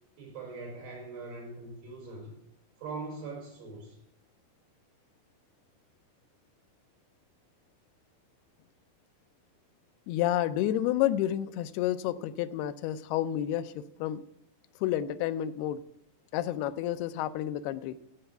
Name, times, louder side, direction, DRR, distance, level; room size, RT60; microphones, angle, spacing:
voice 1, 0.2-2.3 2.8-4.0, right 3 dB, 85° right, -1 dB, 6.9 m, -41 dB
voice 2, 10.1-14.2 14.8-15.8 16.3-18.0, left 12 dB, 85° left, 12 dB, 2.6 m, -30 dB
15.5 x 5.6 x 7.9 m, 0.77 s
omnidirectional pair, 4.5 m